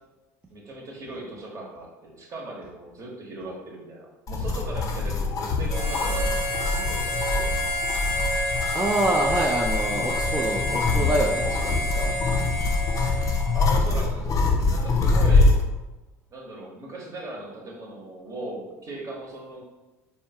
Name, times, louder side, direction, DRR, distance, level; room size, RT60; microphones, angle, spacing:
voice 1, 0.5-7.5 13.5-15.6 16.3-19.6, right 2 dB, 40° right, -1 dB, 1.0 m, -38 dB
sound 1, 4.3-15.6, left 3 dB, 45° left, 0.5 m, -24 dB
Harmonica, 5.7-13.7, left 1 dB, 80° right, 0.9 m, -29 dB
voice 2, 8.7-12.2, right 1 dB, 15° right, -2 dB, 0.4 m, -26 dB
3.3 x 2.3 x 2.7 m, 1.1 s
hypercardioid pair, 75°, 8 cm